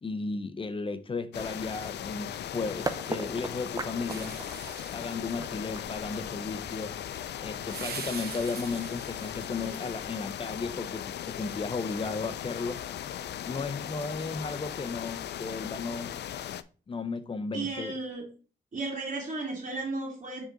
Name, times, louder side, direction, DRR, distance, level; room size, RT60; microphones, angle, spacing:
voice 1, 0.0-4.4 4.9-7.0 7.4-12.8 13.5-16.2 16.9-17.9, left 4 dB, 30° left, 0.6 m, -34 dB
sound 1, 1.3-16.6, left 10 dB, 80° left, 0.4 m, -38 dB
sound 2, 2.9-8.7, right 3 dB, 20° right, 0.6 m, -39 dB
sound 3, 4.1-10.1, right 6 dB, 65° right, 0.9 m, -45 dB
voice 2, 17.5-18.3 18.7-20.5, right 3 dB, 45° right, 2.3 m, -34 dB
4.9 x 3.8 x 5.0 m
cardioid pair, 105°, 17 cm